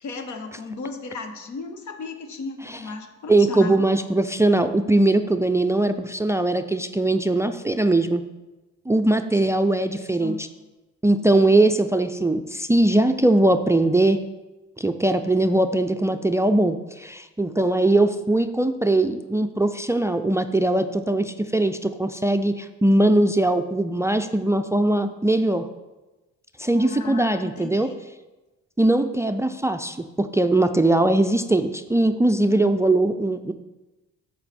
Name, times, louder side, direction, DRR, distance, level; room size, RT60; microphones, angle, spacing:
voice 1, 0.0-3.9 9.9-10.4 26.6-28.0, left 3 dB, 75° left, 7 dB, 1.1 m, -35 dB
voice 2, 3.3-8.2 8.9-10.5 11.0-14.2 14.8-25.6 26.6-27.9 28.8-33.5, right 2 dB, 10° right, 10 dB, 0.3 m, -20 dB
8.7 x 6.6 x 4.2 m, 1.1 s
cardioid pair, 90°, 30 cm